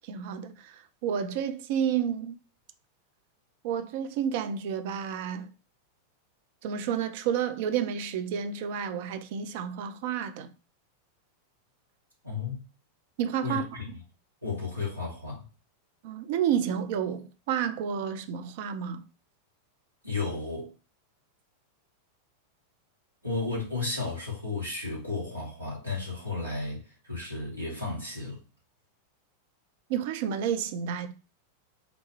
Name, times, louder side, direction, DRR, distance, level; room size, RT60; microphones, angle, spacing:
voice 1, 0.0-2.4 3.6-5.5 6.6-10.5 13.2-13.7 16.0-19.0 29.9-31.1, right 8 dB, 50° right, 0.4 m, -30 dB
voice 2, 12.2-12.6 13.4-13.6 14.4-15.4 20.0-20.7 23.2-28.4, left 3 dB, 90° right, 1.6 m, -33 dB
3.8 x 2.3 x 3.0 m
figure-of-eight pair, 90°, 0 cm